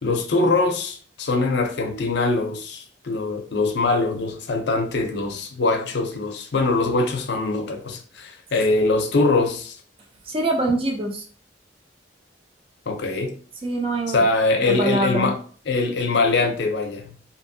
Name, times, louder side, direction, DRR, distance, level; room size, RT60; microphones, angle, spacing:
voice 1, 0.0-9.8 12.9-13.3 14.1-15.4 15.7-17.1, left 3 dB, 70° left, 0.5 m, -23 dB
voice 2, 10.3-11.2 13.6-14.2 14.6-15.3, right 2 dB, 30° right, 0.5 m, -24 dB
2.7 x 2.5 x 2.6 m
head